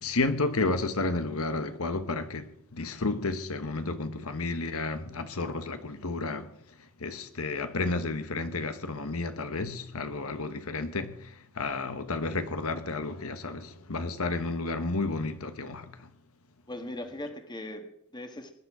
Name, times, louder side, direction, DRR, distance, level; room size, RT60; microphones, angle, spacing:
voice 1, 0.0-6.5 7.0-16.1, left 3 dB, 70° left, 1.1 m, -31 dB
voice 2, 16.7-18.5, left 1 dB, 20° left, 1.5 m, -39 dB
21.0 x 11.0 x 4.9 m
head